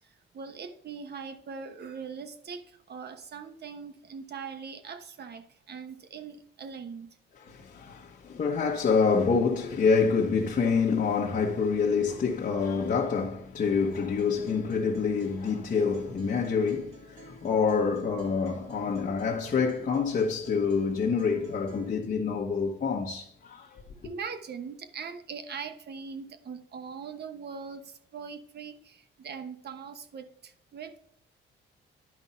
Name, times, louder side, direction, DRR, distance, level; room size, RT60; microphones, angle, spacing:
voice 1, 0.0-7.2 19.0-19.1 24.0-31.0, right 6 dB, 55° right, 1.1 m, -41 dB
voice 2, 7.4-23.8, left 5 dB, 40° left, 1.2 m, -27 dB
Acoustic guitar, 13.9-21.9, right 6 dB, 80° right, 2.1 m, -53 dB
10.5 x 5.4 x 4.3 m
cardioid pair, 90°, 20 cm